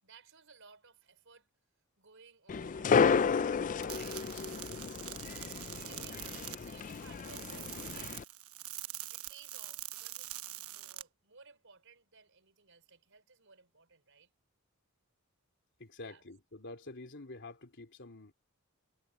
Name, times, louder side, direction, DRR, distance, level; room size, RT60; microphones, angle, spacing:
voice 1, 0.0-1.5 2.0-5.0 5.9-8.2 9.1-14.3 16.0-16.2, right 5 dB, 60° right, 5.4 m, -60 dB
sound 1, 2.5-8.2, left 6 dB, 35° left, 0.4 m, -32 dB
sound 2, 3.8-11.0, right 14 dB, 85° right, 1.1 m, -45 dB
voice 2, 15.8-18.3, left 2 dB, 55° left, 3.5 m, -48 dB
head